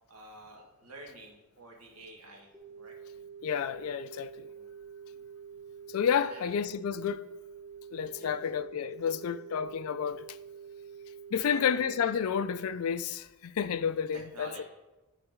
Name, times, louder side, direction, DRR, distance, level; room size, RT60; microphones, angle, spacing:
voice 1, 0.1-2.5 2.8-2.9 4.5-4.7 6.3-6.6 8.2-8.4 11.4-11.8 14.1-14.6, right 2 dB, 80° right, 1.5 m, -49 dB
sound 1, 2.5-12.5, right 7 dB, 10° right, 0.9 m, -47 dB
voice 2, 3.4-4.5 5.9-7.3 7.9-10.4 11.3-14.6, left 7 dB, 70° left, 0.3 m, -31 dB
11.0 x 4.1 x 3.6 m
head